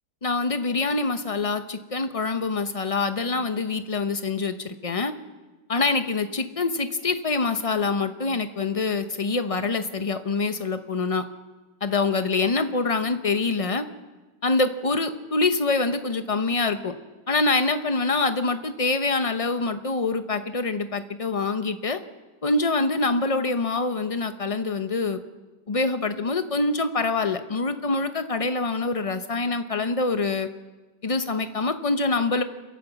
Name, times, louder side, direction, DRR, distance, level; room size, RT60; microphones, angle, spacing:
voice 1, 0.2-5.1 5.7-11.2 11.8-13.8 14.4-16.9 17.3-22.0 22.4-25.2 25.7-30.5 31.0-32.4, left 3 dB, 50° left, 9 dB, 0.4 m, -25 dB
28.5 x 11.0 x 8.1 m, 1.2 s
omnidirectional pair, 1.9 m